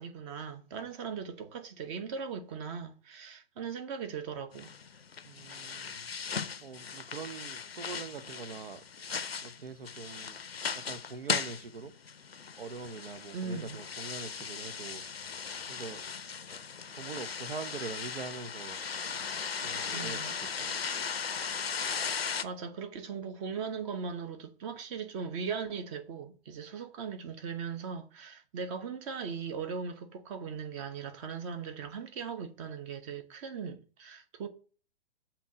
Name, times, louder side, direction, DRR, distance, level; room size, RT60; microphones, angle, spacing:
voice 1, 0.0-4.7 13.3-13.8 19.9-20.3 22.4-34.5, right 6 dB, 30° right, 0.9 m, -39 dB
sound 1, 4.5-22.4, left 6 dB, 90° left, 0.5 m, -37 dB
voice 2, 5.2-6.1 6.6-8.8 9.4-10.4 10.8-11.9 12.6-15.0 15.7-16.0 17.0-18.8 19.6-20.8, right 5 dB, 70° right, 0.8 m, -43 dB
7.1 x 2.9 x 5.9 m
figure-of-eight pair, 120°, 30 cm